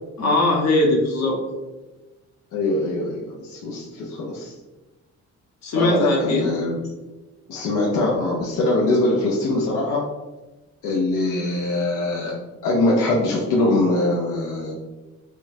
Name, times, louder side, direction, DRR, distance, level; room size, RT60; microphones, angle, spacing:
voice 1, 0.2-1.4 5.6-6.4, left 2 dB, 65° left, -1 dB, 0.9 m, -20 dB
voice 2, 2.5-4.5 5.7-6.8 7.5-10.0 10.8-12.4 12.6-14.7, left 2 dB, 90° left, -4 dB, 0.6 m, -22 dB
3.8 x 2.3 x 2.5 m, 1.1 s
cardioid pair, 90°, 30 cm